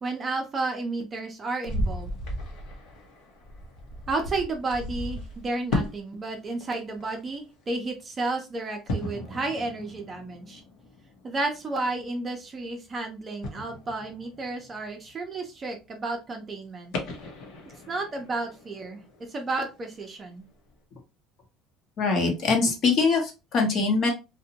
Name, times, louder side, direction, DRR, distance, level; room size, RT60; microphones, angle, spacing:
voice 1, 0.0-2.1 4.1-10.6 11.2-16.9 17.9-19.0 19.3-20.4, right 3 dB, 25° right, 3 dB, 0.5 m, -32 dB
sound 1, 1.6-6.0 6.3-7.3 8.9-13.0 13.4-15.3 15.8-15.9 16.9-20.2 20.7-20.8, left 1 dB, 75° left, 0.8 m, -36 dB
voice 2, 22.0-24.1, left 4 dB, 45° left, 2 dB, 0.9 m, -23 dB
2.6 x 2.1 x 2.8 m, 0.27 s
cardioid pair, 150°, 0 cm